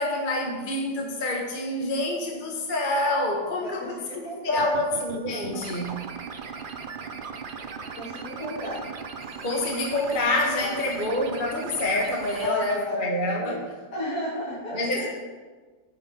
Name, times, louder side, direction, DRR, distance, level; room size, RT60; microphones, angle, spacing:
voice 1, 0.0-6.0 9.4-13.6 14.7-15.1, left 1 dB, 30° left, 0 dB, 1.5 m, -27 dB
voice 2, 3.6-4.7 8.0-8.9 10.6-11.2 12.4-13.6 13.9-15.1, equal, 55° left, -8 dB, 3.2 m, -34 dB
sound 1, 4.5-12.5, right 5 dB, 65° right, 0.5 m, -38 dB
16.0 x 6.7 x 5.4 m, 1.4 s
omnidirectional pair, 2.0 m